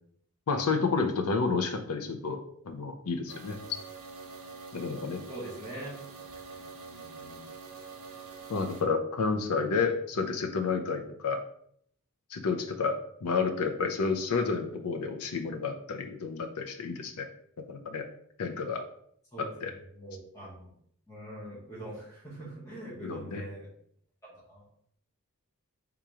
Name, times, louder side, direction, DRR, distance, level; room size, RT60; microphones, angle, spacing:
voice 1, 0.5-3.6 4.7-5.2 8.5-11.4 12.3-17.3 17.7-18.1 18.4-18.8 19.4-19.7 23.0-23.4, left 4 dB, 90° left, 5 dB, 0.5 m, -30 dB
sound 1, 3.3-8.8, right 4 dB, 80° right, 0.9 m, -45 dB
voice 2, 5.3-6.0 6.8-7.5 19.3-19.5 19.9-20.7 21.1-23.7 24.5-24.6, right 1 dB, 15° left, -8 dB, 1.4 m, -43 dB
3.6 x 2.9 x 4.7 m, 0.66 s
head